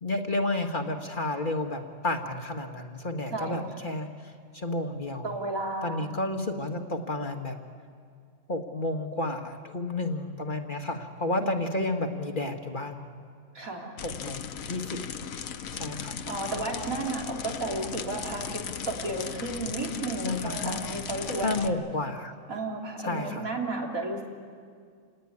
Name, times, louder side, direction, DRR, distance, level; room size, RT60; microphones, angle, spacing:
voice 1, 0.0-4.1 4.5-5.3 5.8-7.6 8.5-13.1 14.0-15.0 15.7-16.2 20.2-20.7 21.4-22.3 23.0-23.5, left 2 dB, 35° left, 4 dB, 1.7 m, -31 dB
voice 2, 3.3-3.7 5.2-6.1 11.4-11.7 13.5-13.9 16.3-21.7 22.5-24.2, right 2 dB, 80° right, -1 dB, 3.8 m, -33 dB
sound 1, 14.0-21.7, left 7 dB, 70° left, 1.4 m, -37 dB
28.5 x 18.5 x 9.7 m, 2.2 s
omnidirectional pair, 1.5 m